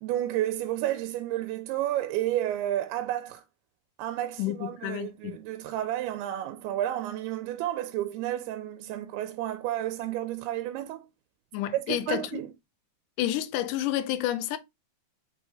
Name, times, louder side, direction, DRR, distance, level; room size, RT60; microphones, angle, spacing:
voice 1, 0.0-3.4 4.0-11.1 11.7-12.5, right 13 dB, 85° right, 2.4 m, -31 dB
voice 2, 4.4-5.4 11.5-12.4 13.2-14.6, left 13 dB, 90° left, 1.8 m, -30 dB
6.4 x 4.4 x 3.3 m
omnidirectional pair, 4.6 m